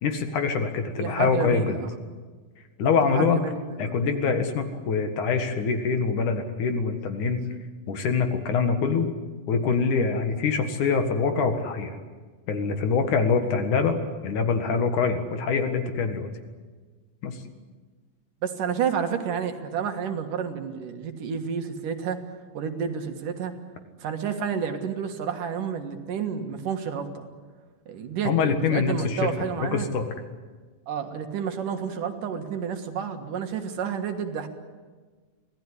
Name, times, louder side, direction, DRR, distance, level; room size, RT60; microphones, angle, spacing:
voice 1, 0.0-1.8 2.8-3.4 3.8-7.4 7.9-9.1 9.5-12.0 12.5-14.0 14.2-16.3 17.2-17.4 28.2-30.1, left 5 dB, 65° left, 7 dB, 3.1 m, -24 dB
voice 2, 1.0-1.9 3.0-4.0 18.4-22.2 22.5-23.5 24.0-27.3 27.9-29.9 30.9-34.5, right 7 dB, 70° right, 6 dB, 3.2 m, -30 dB
25.5 x 17.5 x 9.8 m, 1.4 s
omnidirectional pair, 4.0 m